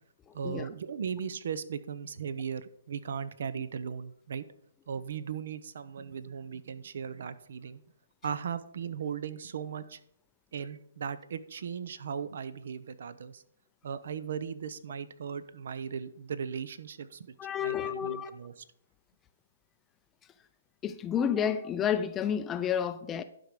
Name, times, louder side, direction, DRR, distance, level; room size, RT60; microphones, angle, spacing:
voice 1, 0.3-4.4 4.9-7.8 8.2-10.0 10.5-13.4 13.8-17.3 17.6-18.6, right 7 dB, 60° right, 0.7 m, -37 dB
voice 2, 17.4-18.3 20.8-23.2, left 8 dB, 15° left, 0.5 m, -30 dB
11.5 x 5.3 x 4.8 m
hypercardioid pair, 150°, 0 cm